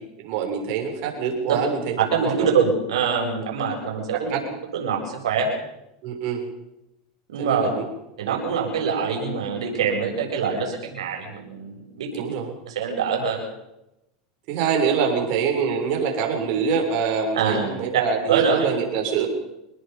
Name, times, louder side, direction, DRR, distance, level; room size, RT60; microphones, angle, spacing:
voice 1, 0.2-2.5 4.3-4.4 6.0-6.5 7.4-7.9 8.3-8.4 12.1-12.5 14.5-19.3, right 6 dB, 55° right, 2 dB, 7.2 m, -25 dB
voice 2, 2.0-4.4 4.7-5.5 7.3-7.7 8.2-12.1 12.7-13.4 17.3-17.8 18.3-18.7, right 6 dB, 85° right, 1 dB, 7.7 m, -24 dB
26.0 x 20.5 x 5.5 m, 0.90 s
hypercardioid pair, 110°, 3 cm